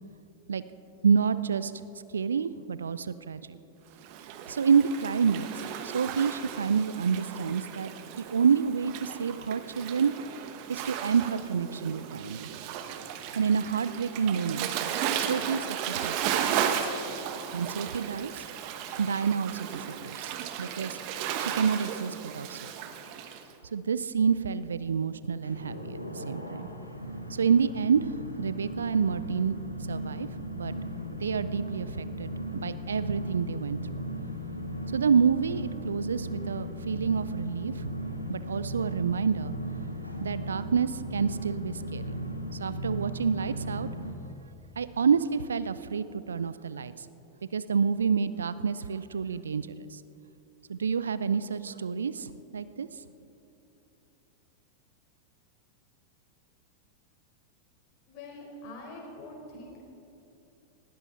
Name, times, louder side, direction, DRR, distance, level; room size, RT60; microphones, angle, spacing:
voice 1, 1.0-1.7 2.1-3.4 4.5-5.5 5.8-10.1 10.7-12.5 13.3-14.7 15.3-16.8 17.5-18.4 19.0-20.3 20.6-21.0 21.4-22.7 23.7-26.7 27.3-28.1 28.4-29.6 29.9-30.3 30.6-30.7 31.2-33.8 34.9-37.7 38.3-39.5 40.2-42.2 42.6-43.9 44.8-47.1 47.5-50.0 50.7-52.9, right 6 dB, 70° right, 15 dB, 0.5 m, -28 dB
Waves surf, 4.0-23.4, right 8 dB, 45° right, 1.1 m, -35 dB
sound 1, 25.4-44.1, equal, 85° left, 1.3 m, -37 dB
voice 2, 58.1-59.8, left 1 dB, 45° left, 0 dB, 4.4 m, -44 dB
19.0 x 16.0 x 4.2 m, 2.9 s
figure-of-eight pair, 90°, 0 cm